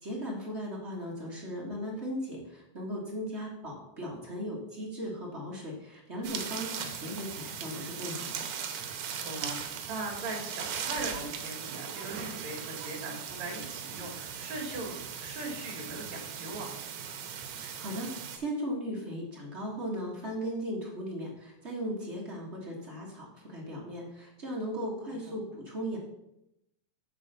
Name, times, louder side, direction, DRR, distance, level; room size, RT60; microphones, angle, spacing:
voice 1, 0.0-8.4 17.6-26.0, equal, 40° right, -3 dB, 0.9 m, -37 dB
sound 1, 6.2-18.4, right 8 dB, 85° right, 2.4 m, -39 dB
voice 2, 9.2-16.7 25.1-25.4, right 2 dB, 65° right, 0 dB, 2.7 m, -40 dB
7.8 x 4.1 x 6.6 m, 0.84 s
omnidirectional pair, 3.5 m